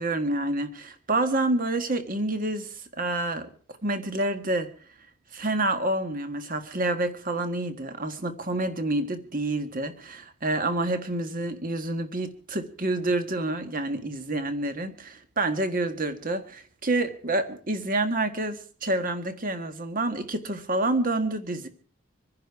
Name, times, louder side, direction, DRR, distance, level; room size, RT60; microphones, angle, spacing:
voice 1, 0.0-3.5 3.8-4.7 5.3-21.7, right 2 dB, 40° right, 9 dB, 1.6 m, -28 dB
25.5 x 10.5 x 4.7 m, 0.43 s
head